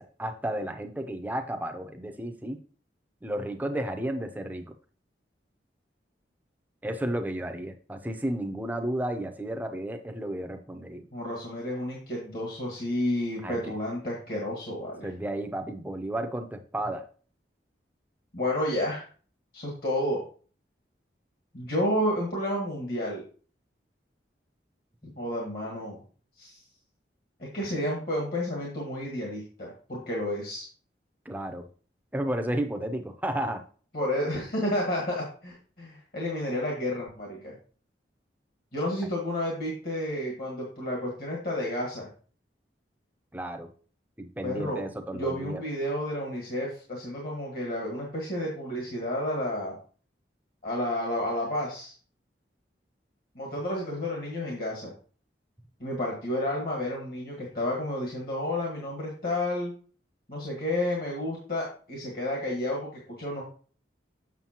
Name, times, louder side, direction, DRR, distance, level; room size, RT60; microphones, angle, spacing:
voice 1, 0.0-2.6 3.2-4.7 6.8-11.0 13.4-13.7 15.0-17.1 31.3-31.7 32.1-33.6 43.3-43.7 44.2-45.6, right 1 dB, 10° right, 6 dB, 0.6 m, -32 dB
voice 2, 11.1-15.1 18.3-19.0 19.5-20.2 21.5-23.2 25.2-26.0 26.4-26.6 27.4-30.7 33.9-37.5 38.7-42.1 44.4-44.8 45.1-49.8 50.6-51.9 53.3-54.9 55.8-59.7 60.3-63.4, left 1 dB, 55° left, -2 dB, 1.6 m, -31 dB
7.2 x 6.6 x 2.9 m, 0.41 s
head